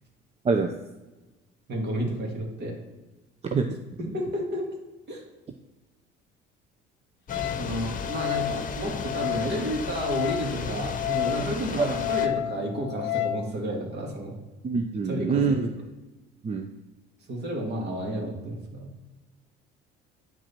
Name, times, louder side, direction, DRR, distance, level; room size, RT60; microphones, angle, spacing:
voice 1, 1.7-2.7 4.0-4.7 5.1-5.2 7.6-14.3 15.1-15.6 17.3-18.9, right 1 dB, 50° right, 0 dB, 2.5 m, -31 dB
Wind instrument woodwind instrument, 7.3-13.5, left 14 dB, 60° left, 0.5 m, -31 dB
Thunder / Rain, 7.3-12.3, left 5 dB, 40° left, 0.9 m, -35 dB
voice 2, 14.6-15.7 16.4-16.7, right 5 dB, 30° right, 5 dB, 0.6 m, -25 dB
9.2 x 4.8 x 4.4 m, 1.1 s
cardioid pair, 100°, 21 cm